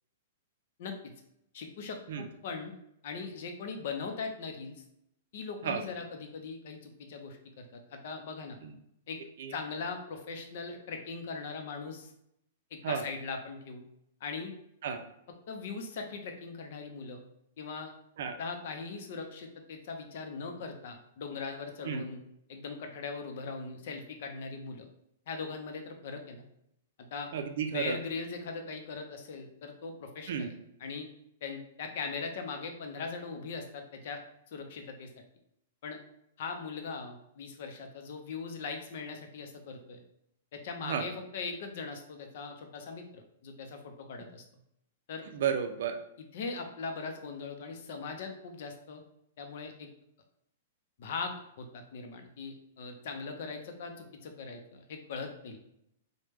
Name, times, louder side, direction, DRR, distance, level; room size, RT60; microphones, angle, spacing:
voice 1, 0.8-1.1 1.5-2.7 3.0-4.8 5.3-8.6 9.1-9.2 9.5-12.1 12.7-13.8 14.2-14.5 15.5-17.2 17.6-17.9 18.4-22.2 22.5-24.9 25.3-26.4 27.1-27.3 27.7-30.5 30.8-31.1 31.4-34.2 34.5-35.1 35.8-36.0 36.4-40.0 40.5-44.4 45.1-45.3 46.3-49.0 49.4-49.9 51.0-55.6, left 4 dB, 55° left, 5 dB, 0.5 m, -40 dB
voice 2, 27.3-28.0 30.3-30.5 40.8-41.1 45.3-46.0, right 7 dB, 65° right, 5 dB, 0.4 m, -32 dB
3.3 x 2.1 x 3.1 m, 0.77 s
hypercardioid pair, 160°, 0 cm